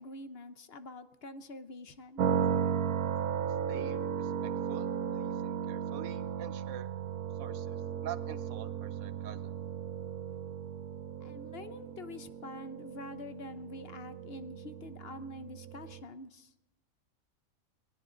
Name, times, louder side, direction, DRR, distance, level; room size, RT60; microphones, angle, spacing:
voice 1, 0.0-2.3 11.2-16.5, left 2 dB, 50° left, 11 dB, 1.0 m, -46 dB
sound 1, 2.2-16.0, right 8 dB, 85° right, 1.3 m, -35 dB
voice 2, 3.7-6.9 7.4-7.8 8.0-9.5, right 10 dB, 60° right, 12 dB, 1.2 m, -46 dB
20.5 x 17.0 x 3.9 m, 0.95 s
omnidirectional pair, 1.5 m